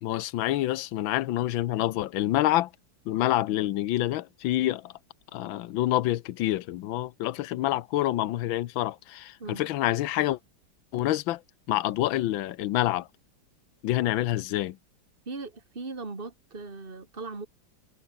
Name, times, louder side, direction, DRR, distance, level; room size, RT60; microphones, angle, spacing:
voice 1, 0.0-2.7 3.1-4.9 5.3-10.4 10.9-11.4 11.7-13.1 13.8-14.8, left 14 dB, 80° left, 1.6 m, -27 dB
voice 2, 15.3-17.5, right 3 dB, 25° right, 3.0 m, -38 dB
omnidirectional pair, 2.2 m